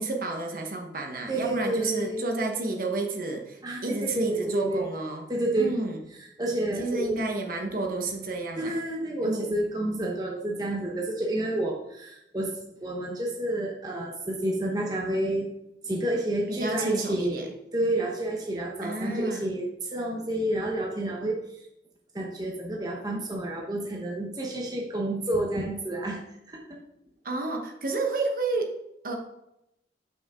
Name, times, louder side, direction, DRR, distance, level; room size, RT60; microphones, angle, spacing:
voice 1, 0.0-5.3 5.6-6.0 6.8-8.7 9.2-9.5 16.5-17.5 18.8-19.4 27.2-28.7 29.0-29.2, right 2 dB, 50° right, 3 dB, 1.0 m, -30 dB
voice 2, 1.3-2.2 3.6-4.8 5.3-5.7 6.4-7.3 8.6-12.5 12.8-15.5 15.8-21.6 22.1-26.2 26.5-26.6, right 1 dB, 20° right, -1 dB, 0.8 m, -29 dB
7.1 x 5.8 x 3.6 m, 0.83 s
head